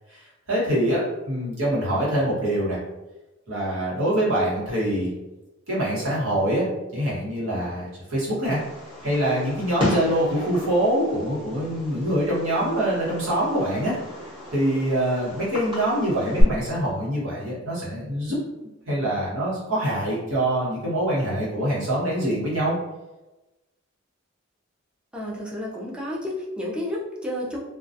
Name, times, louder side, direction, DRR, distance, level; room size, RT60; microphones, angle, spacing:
voice 1, 0.1-2.8 3.5-5.1 5.7-6.7 6.9-8.6 9.0-14.0 14.5-18.4 18.9-22.8, right 1 dB, 80° right, -7 dB, 1.1 m, -24 dB
Fireworks, 8.4-16.4, left 1 dB, 25° right, 0.9 m, -33 dB
voice 2, 25.1-27.6, left 1 dB, 5° right, -5 dB, 0.4 m, -31 dB
2.3 x 2.2 x 2.6 m, 1.1 s
head